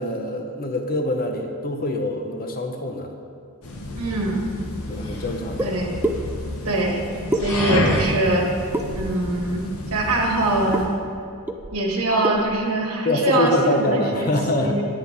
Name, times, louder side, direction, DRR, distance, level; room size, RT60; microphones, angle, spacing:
voice 1, 0.0-3.1 4.9-5.7 13.0-14.8, left 1 dB, 40° left, 4 dB, 0.8 m, -24 dB
sound 1, 3.6-10.9, left 1 dB, 70° left, 1.2 m, -29 dB
voice 2, 3.9-4.5 5.6-5.9 6.6-7.0 7.3-8.5 8.9-9.6 9.9-10.9 11.7-13.5 13.8-14.3 14.6-14.8, right 2 dB, 75° right, 0 dB, 1.6 m, -23 dB
sound 2, 5.6-5.7 6.0-6.2 7.3-7.9 8.7-9.2 10.7-10.9 11.1-11.2 11.5-11.9 12.2-12.6, right 1 dB, 10° right, 0.4 m, -26 dB
9.7 x 9.4 x 3.4 m, 2.4 s
head